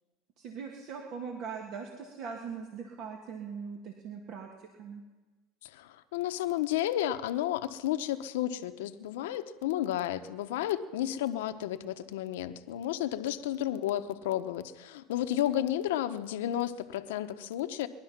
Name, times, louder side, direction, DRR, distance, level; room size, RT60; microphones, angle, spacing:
voice 1, 0.4-5.0, right 6 dB, 55° right, 2 dB, 1.8 m, -41 dB
voice 2, 5.6-17.9, left 12 dB, 85° left, 10 dB, 0.8 m, -32 dB
21.0 x 11.5 x 5.9 m, 1.3 s
supercardioid pair, 110°, 0 cm